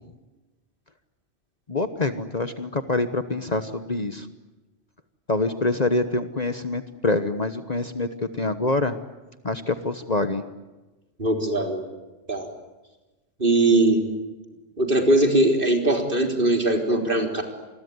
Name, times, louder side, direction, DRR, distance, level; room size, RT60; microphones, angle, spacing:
voice 1, 1.7-4.3 5.3-8.9 9.4-10.4, left 2 dB, 35° left, 10 dB, 1.2 m, -25 dB
voice 2, 11.2-11.8 12.3-12.5 13.4-14.0 14.8-17.4, right 2 dB, 45° right, 3 dB, 4.0 m, -20 dB
27.5 x 21.5 x 9.5 m, 1.1 s
omnidirectional pair, 1.2 m